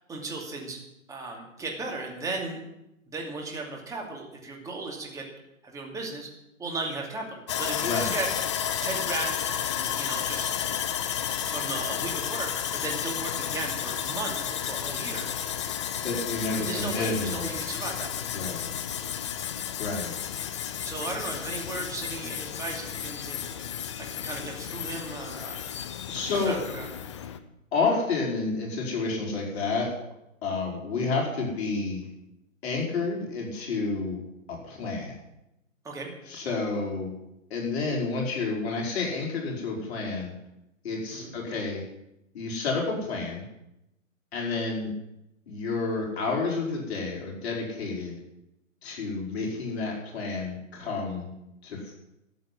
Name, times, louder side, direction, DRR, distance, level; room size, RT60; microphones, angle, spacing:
voice 1, 0.1-0.8 1.1-2.6 3.1-5.3 5.6-6.3 6.6-8.3 8.8-9.4 9.7-10.5 11.4-15.3 16.5-18.3 20.8-23.4 24.0-25.7 26.2-26.9 35.8-36.1 41.1-41.3, right 3 dB, 10° right, 0 dB, 2.6 m, -36 dB
Sawing, 7.5-27.4, left 9 dB, 20° left, 0.5 m, -32 dB
voice 2, 7.8-8.2 16.0-17.5 18.3-18.6 19.8-20.1 26.1-26.6 27.7-30.0 30.4-32.0 32.6-34.2 34.5-35.2 36.3-37.1 37.5-40.3 40.8-41.8 42.3-43.4 44.3-44.9 45.5-48.2 48.8-51.3 51.6-51.9, left 3 dB, 50° left, -2 dB, 5.0 m, -30 dB
13.0 x 7.7 x 9.8 m, 0.87 s
hypercardioid pair, 145°, 41 cm